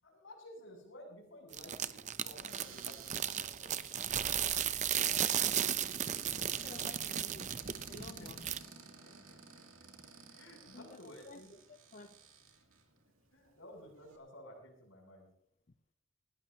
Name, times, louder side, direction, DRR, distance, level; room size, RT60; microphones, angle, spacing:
voice 1, 0.0-3.9 4.8-5.1 6.6-6.8 7.9-8.3 10.3-11.5 13.3-15.3, left 1 dB, 70° left, 0 dB, 7.7 m, -54 dB
sound 1, 1.5-8.6, right 10 dB, 35° right, 0.6 m, -35 dB
Cupboard open or close, 2.4-12.8 13.5-13.6 13.8-14.2, right 7 dB, 80° right, 2.6 m, -51 dB
voice 2, 6.5-7.5 7.9-8.5 10.7-12.2, left 4 dB, 40° left, 8 dB, 0.6 m, -53 dB
19.5 x 18.0 x 2.8 m, 0.76 s
head